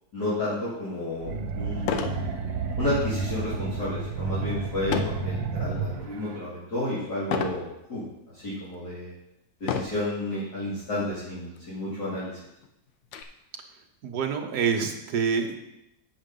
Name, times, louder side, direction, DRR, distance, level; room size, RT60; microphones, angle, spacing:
voice 1, 0.1-2.0 2.8-8.0 8.4-9.1 9.6-12.3, left 1 dB, 60° left, -10 dB, 3.3 m, -31 dB
sound 1, 0.9-1.0 1.8-2.2 2.7-3.0 4.9-5.3 5.9-6.3 7.3-7.7 8.4-8.5 9.6-10.1 11.1-11.2 11.6-11.7 12.1-13.2, left 6 dB, 80° left, 1.5 m, -30 dB
sound 2, 1.2-6.4, right 4 dB, 85° right, 1.8 m, -31 dB
voice 2, 14.0-15.6, right 6 dB, 60° right, 4 dB, 1.5 m, -27 dB
8.5 x 6.4 x 5.3 m, 0.85 s
omnidirectional pair, 2.0 m